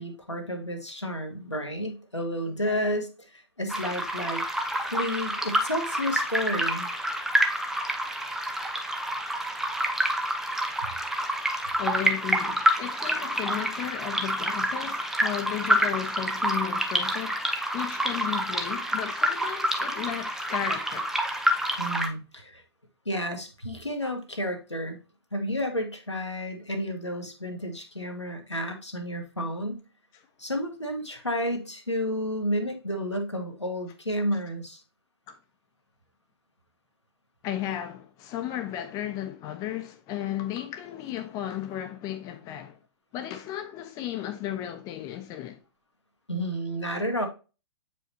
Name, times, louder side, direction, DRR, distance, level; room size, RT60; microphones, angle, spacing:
voice 1, 0.0-4.4 4.8-6.9 21.8-22.6 23.0-25.0 25.3-29.8 30.4-34.8 46.3-47.3, equal, 90° left, 1.4 m, -31 dB
sound 1, 3.7-22.1, right 1 dB, 5° right, 0.6 m, -28 dB
voice 2, 11.8-17.4 17.7-21.1 35.3-35.4 37.4-42.8 43.1-45.6, left 11 dB, 25° left, 0.9 m, -34 dB
7.7 x 5.0 x 2.8 m
figure-of-eight pair, 115°, 14 cm